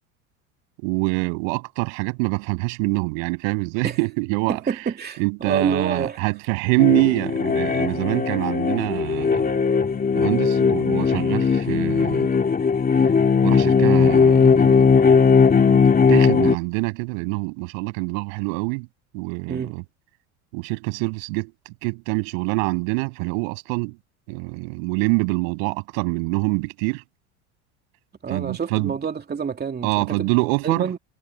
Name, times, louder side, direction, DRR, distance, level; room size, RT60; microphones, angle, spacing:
voice 1, 0.8-4.6 5.2-9.5 10.1-12.3 12.9-13.0 13.4-14.9 15.7-15.8 16.1-18.9 19.1-19.8 20.5-24.0 24.3-27.0 28.3-28.9 29.8-30.9, right 36 dB, 70° right, 6.8 m, -25 dB
voice 2, 4.5-6.2 19.5-19.7 28.2-30.3 30.6-31.0, right 6 dB, 25° right, 2.6 m, -27 dB
sound 1, 6.8-16.5, left 5 dB, 20° left, 2.8 m, -18 dB
supercardioid pair, 95°, 40 cm